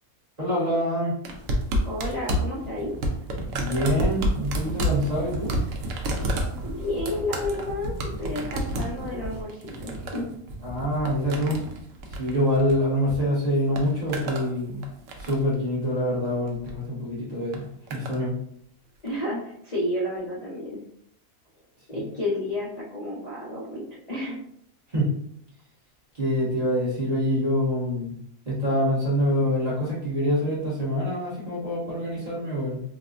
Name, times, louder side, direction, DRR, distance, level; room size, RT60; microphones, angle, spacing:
voice 1, 0.4-1.1 3.5-5.5 10.6-11.6 12.2-14.8 15.2-17.6 17.9-18.4 24.9-25.1 26.2-28.1 28.5-32.8, equal, 30° right, -7 dB, 0.9 m, -25 dB
sound 1, 1.2-13.2 13.5-14.5 14.8-15.5 16.5-16.8 17.5-18.2 19.1-19.2, right 1 dB, 70° right, 0.9 m, -30 dB
voice 2, 1.8-2.9 6.6-10.4 19.0-20.8 21.9-24.4, left 1 dB, 40° left, -7 dB, 0.6 m, -31 dB
4.1 x 2.1 x 2.5 m, 0.71 s
omnidirectional pair, 1.5 m